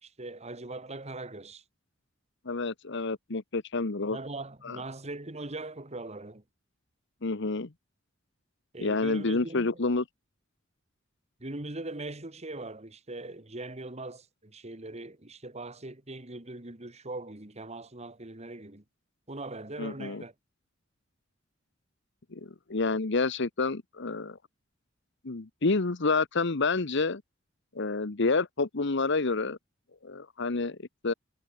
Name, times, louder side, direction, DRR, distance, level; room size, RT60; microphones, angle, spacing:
voice 1, 0.0-1.6 4.1-6.4 8.7-9.7 11.4-18.8 19.3-20.3, right 2 dB, 35° right, 2.3 m, -40 dB
voice 2, 2.4-4.2 4.6-4.8 7.2-7.7 8.8-10.0 19.8-20.2 22.3-24.4 25.2-27.2 27.7-29.6 30.0-30.8 31.0-31.1, left 3 dB, 60° left, 1.1 m, -29 dB
head